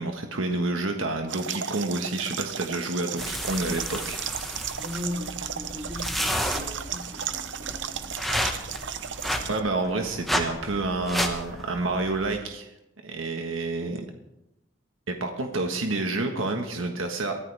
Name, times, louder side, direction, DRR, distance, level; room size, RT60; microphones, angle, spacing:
voice 1, 0.0-4.2 9.5-12.7 13.0-14.0 15.1-17.4, right 2 dB, 85° right, 4 dB, 1.5 m, -29 dB
sound 1, 1.3-9.6, right 8 dB, 65° right, 0.8 m, -35 dB
sound 2, 3.2-12.3, equal, ahead, 1.5 m, -32 dB
voice 2, 4.8-8.2, left 1 dB, 35° right, -1 dB, 3.7 m, -38 dB
23.5 x 14.0 x 3.5 m, 0.88 s
head